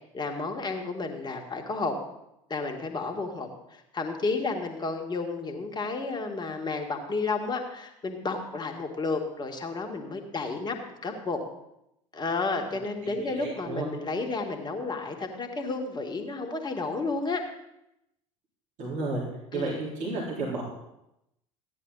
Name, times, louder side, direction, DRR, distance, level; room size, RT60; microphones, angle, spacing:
voice 1, 0.1-2.0 2.5-11.4 12.1-17.4 19.5-19.8, left 3 dB, 25° left, 3 dB, 2.0 m, -32 dB
voice 2, 13.2-13.9 18.8-19.2 19.5-20.6, right 3 dB, 45° right, -6 dB, 4.1 m, -32 dB
14.5 x 10.0 x 4.1 m, 0.84 s
figure-of-eight pair, 70°, 17 cm